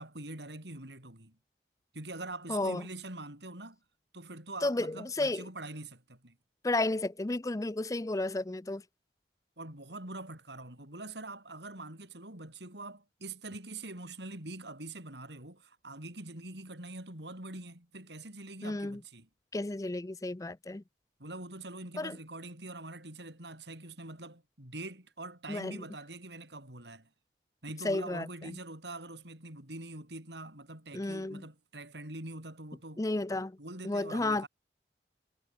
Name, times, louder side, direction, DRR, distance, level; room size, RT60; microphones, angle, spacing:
voice 1, 0.0-1.4 1.9-3.8 4.1-6.4 9.6-19.3 21.2-27.1 27.6-33.0 33.3-34.5, right 2 dB, 75° right, 7.5 m, -44 dB
voice 2, 2.5-2.8 4.6-5.5 6.6-8.8 18.6-19.0 19.5-20.8 22.0-22.2 25.5-25.8 27.8-28.6 30.9-31.5 33.0-33.6 33.8-34.5, left 2 dB, 20° left, 0.5 m, -32 dB
head